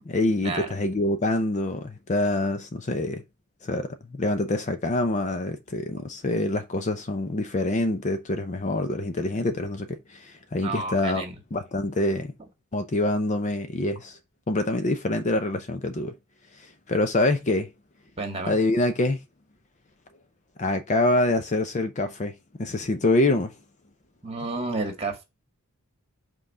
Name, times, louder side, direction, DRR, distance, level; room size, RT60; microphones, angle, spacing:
voice 1, 0.1-3.2 3.6-11.2 11.5-12.3 12.7-14.2 14.5-16.1 16.6-17.7 18.5-19.2 20.6-23.5, left 2 dB, 35° left, 0.6 m, -26 dB
voice 2, 10.6-11.4 18.2-18.6 24.2-25.2, right 3 dB, 25° right, 1.8 m, -31 dB
5.6 x 3.8 x 5.5 m
head